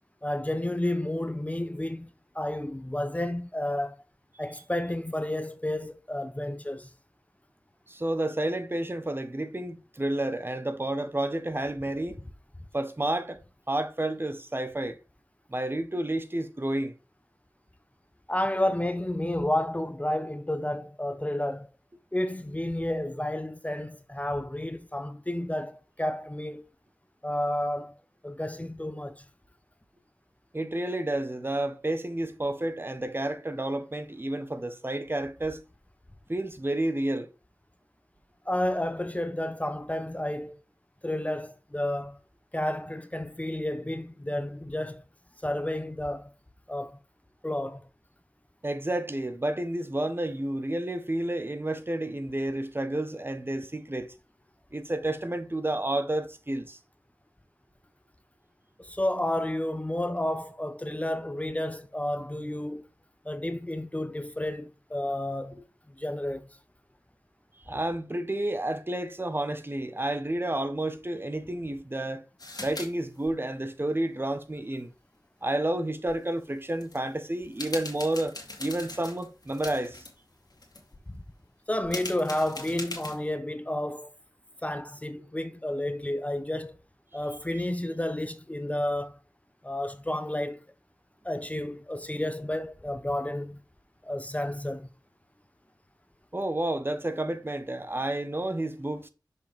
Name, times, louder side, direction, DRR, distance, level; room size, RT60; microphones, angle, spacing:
voice 1, 0.2-2.1 2.3-4.0 4.4-6.9 18.3-21.7 22.1-26.6 27.2-28.0 28.2-29.2 38.5-40.6 41.0-42.2 42.5-45.0 45.4-46.3 46.7-47.0 47.4-47.8 58.8-62.8 63.2-65.6 66.0-66.6 81.1-81.2 81.7-84.1 84.6-86.8 87.1-89.1 89.6-90.6 91.2-93.6 94.0-94.9, left 1 dB, 20° left, 0.7 m, -31 dB
voice 2, 7.9-12.2 12.7-13.4 13.7-15.0 15.5-16.9 30.5-35.6 36.3-37.3 48.6-54.1 54.7-56.8 67.7-72.2 72.6-74.9 75.4-80.0 87.6-87.7 96.3-99.1, right 1 dB, 30° right, 1.0 m, -30 dB
sound 1, 72.4-72.9 73.1-73.3 76.1-76.2 76.7-77.0 77.4-80.1 80.5-81.0 81.8-83.3, left 2 dB, 60° left, 2.2 m, -40 dB
6.4 x 5.2 x 3.4 m
cardioid pair, 45°, 8 cm